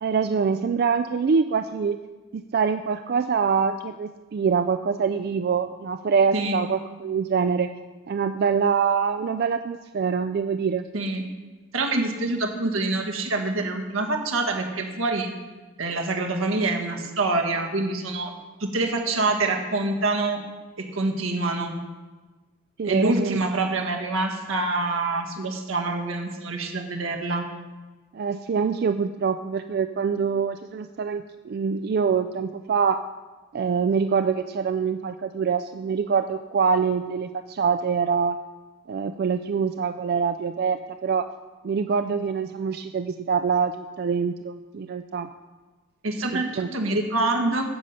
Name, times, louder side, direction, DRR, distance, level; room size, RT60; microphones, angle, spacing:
voice 1, 0.0-2.0 2.3-7.7 8.1-10.9 22.8-23.4 28.1-33.0 33.5-38.4 38.9-41.3 41.6-45.3 46.3-47.0, right 6 dB, 50° right, 8 dB, 0.3 m, -25 dB
voice 2, 11.7-15.3 15.8-18.3 18.6-20.4 20.8-21.7 22.8-27.4 46.0-47.6, right 2 dB, 85° right, 3 dB, 1.6 m, -26 dB
10.0 x 8.0 x 5.5 m, 1.3 s
head